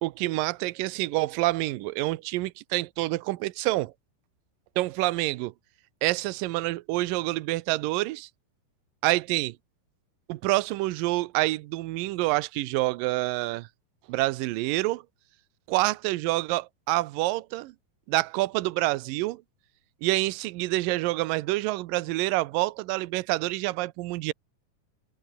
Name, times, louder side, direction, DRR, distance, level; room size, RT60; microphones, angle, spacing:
voice 1, 0.0-3.9 4.8-5.5 6.0-8.3 9.0-9.6 10.3-13.7 14.1-15.0 15.7-17.7 18.1-19.4 20.0-24.3, right 19 dB, 80° right, 2.4 m, -27 dB
omnidirectional pair, 4.2 m